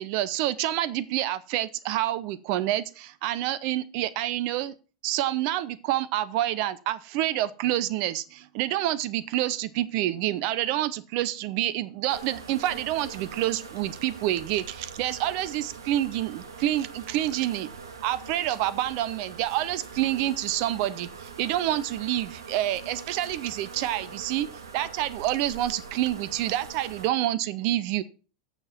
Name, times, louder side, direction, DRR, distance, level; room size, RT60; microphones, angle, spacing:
voice 1, 0.0-4.7 5.0-17.7 18.0-24.5 24.7-28.0, right 13 dB, 50° right, 17 dB, 0.6 m, -28 dB
sound 1, 12.1-27.1, right 5 dB, 75° right, 1.4 m, -43 dB
8.9 x 6.7 x 5.7 m, 0.36 s
figure-of-eight pair, 85°, 2 cm